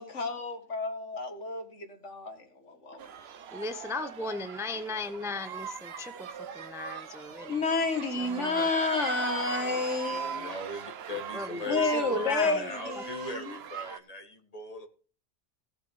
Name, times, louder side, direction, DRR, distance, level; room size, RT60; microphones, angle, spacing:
voice 1, 0.0-2.4 2.6-3.0 7.5-10.5 11.6-13.6, left 3 dB, 85° left, 6 dB, 2.2 m, -30 dB
sound 1, 3.0-14.0, right 7 dB, 65° right, 1.0 m, -40 dB
voice 2, 3.5-7.6 8.2-8.7 11.1-12.7 13.0-13.1, left 3 dB, 5° right, 10 dB, 0.6 m, -37 dB
voice 3, 9.2-14.9, left 2 dB, 30° left, 5 dB, 2.0 m, -40 dB
17.5 x 6.8 x 4.8 m, 0.39 s
omnidirectional pair, 1.2 m